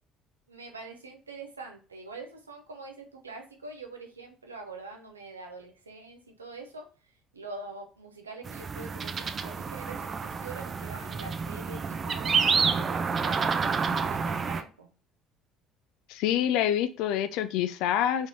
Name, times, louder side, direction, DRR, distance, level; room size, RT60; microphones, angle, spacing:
voice 1, 0.5-6.9 7.3-14.9, right 3 dB, 90° right, 3 dB, 0.5 m, -44 dB
sound 1, 8.4-14.6, right 5 dB, 40° right, 0.4 m, -29 dB
voice 2, 16.1-18.3, left 10 dB, 65° left, 12 dB, 0.3 m, -26 dB
3.7 x 3.2 x 2.7 m, 0.37 s
figure-of-eight pair, 55°, 0 cm